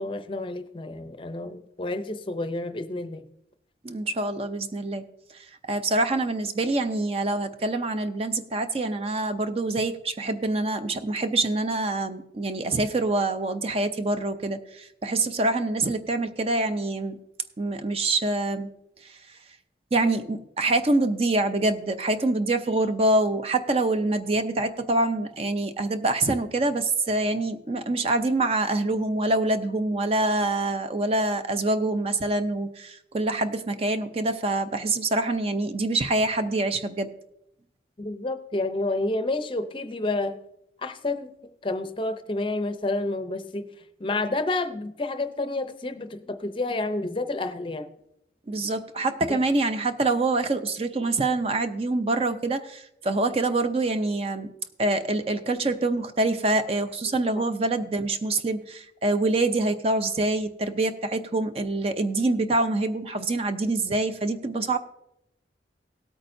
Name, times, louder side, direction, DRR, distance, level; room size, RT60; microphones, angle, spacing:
voice 1, 0.0-3.3 38.0-40.4 40.8-41.3 41.6-43.7 44.0-47.9 49.3-49.4, left 2 dB, 30° left, 9 dB, 0.6 m, -29 dB
voice 2, 3.8-5.0 5.3-17.2 17.6-18.7 19.0-19.2 19.9-37.1 48.5-54.5 54.8-64.8, right 2 dB, 35° right, 9 dB, 0.5 m, -25 dB
17.5 x 8.6 x 2.6 m, 0.80 s
head